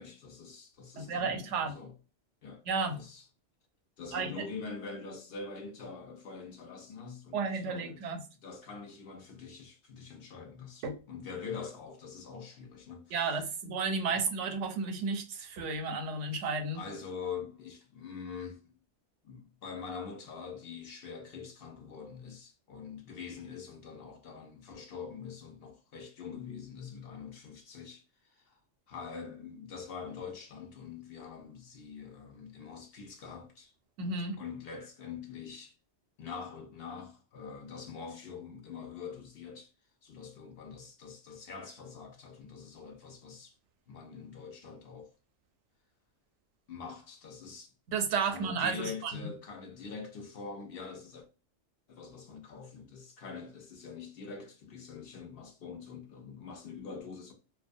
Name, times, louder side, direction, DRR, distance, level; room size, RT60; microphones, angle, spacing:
voice 1, 0.0-1.9 2.4-2.6 2.9-3.3 4.0-8.0 8.4-13.4 16.7-18.7 19.2-28.6 28.9-33.7 34.4-35.8 36.2-39.7 40.0-43.6 43.9-45.1 46.7-47.7 48.2-51.2 51.9-57.3, left 5 dB, 65° left, 0.7 m, -44 dB
voice 2, 1.0-1.7 2.7-3.0 4.1-4.3 7.3-8.2 10.8-11.0 13.1-16.8 34.0-34.4 47.9-49.2, right 4 dB, 85° right, 0.9 m, -32 dB
2.3 x 2.2 x 2.5 m
omnidirectional pair, 1.2 m